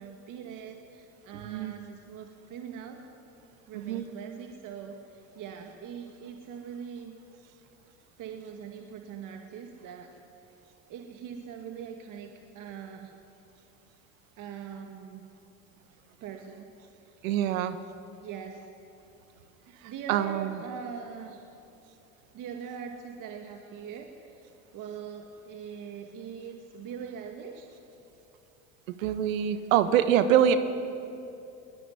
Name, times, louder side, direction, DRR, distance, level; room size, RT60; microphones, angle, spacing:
voice 1, 0.0-3.0 3.7-7.2 8.2-10.1 10.9-13.2 14.4-15.3 16.2-17.3 18.2-18.6 19.8-21.4 22.3-27.7, right 7 dB, 55° right, 4 dB, 2.2 m, -42 dB
voice 2, 3.7-4.1 17.2-17.8 19.8-20.6 28.9-30.6, right 10 dB, 85° right, 11 dB, 1.4 m, -25 dB
22.0 x 20.0 x 9.8 m, 2.8 s
supercardioid pair, 95°, 39 cm